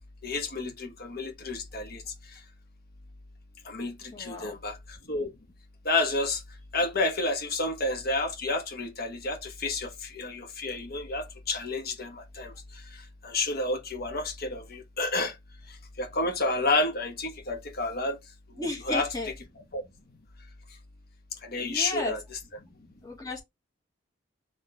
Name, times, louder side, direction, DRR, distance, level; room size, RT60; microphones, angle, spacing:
voice 1, 0.2-2.0 2.3-2.4 3.6-5.3 5.8-6.4 6.7-15.3 15.7-18.2 18.5-19.1 19.6-19.8 21.4-22.4, left 2 dB, 50° left, 1.2 m, -30 dB
voice 2, 4.1-4.6 18.6-19.3 21.6-22.1 23.0-23.4, left 2 dB, 20° left, 1.6 m, -33 dB
4.2 x 3.2 x 3.2 m
head